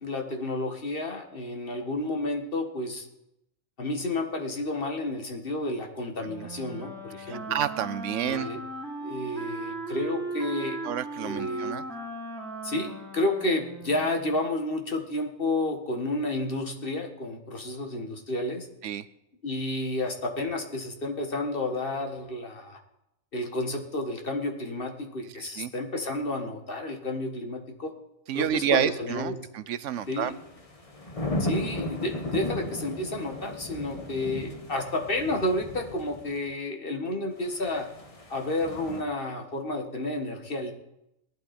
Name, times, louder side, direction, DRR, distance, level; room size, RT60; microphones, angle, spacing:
voice 1, 0.0-3.1 3.8-7.6 8.2-8.6 9.0-10.8 11.2-11.7 12.6-18.7 19.4-22.8 23.3-27.9 28.3-29.3 30.1-30.4 31.4-37.9 38.3-40.7, left 2 dB, 40° left, 3 dB, 1.9 m, -31 dB
Wind instrument woodwind instrument, 6.2-14.4, right 2 dB, ahead, 3.5 m, -37 dB
voice 2, 7.3-8.5 10.8-11.8 18.8-19.0 25.4-25.7 28.3-30.3, right 10 dB, 65° right, 15 dB, 1.0 m, -29 dB
sound 1, 30.1-36.4 37.4-39.0, left 1 dB, 25° left, 1.5 m, -35 dB
18.5 x 12.0 x 4.3 m, 0.84 s
omnidirectional pair, 1.5 m